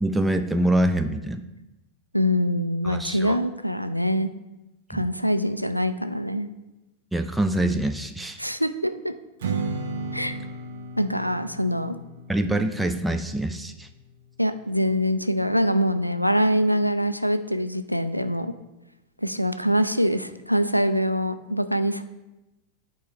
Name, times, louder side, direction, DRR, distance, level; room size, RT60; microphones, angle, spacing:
voice 1, 0.0-1.4 2.8-3.4 4.9-5.0 7.1-8.4 12.3-13.9, right 1 dB, 5° right, 8 dB, 0.4 m, -25 dB
voice 2, 2.1-4.3 4.9-6.5 8.4-9.1 10.1-10.4 11.0-12.0 14.4-18.5 19.2-22.0, equal, 90° left, 10 dB, 0.4 m, -24 dB
Strum, 9.4-14.6, right 3 dB, 60° right, 0.8 m, -35 dB
9.3 x 4.6 x 3.3 m, 1.0 s
figure-of-eight pair, 90°, 0 cm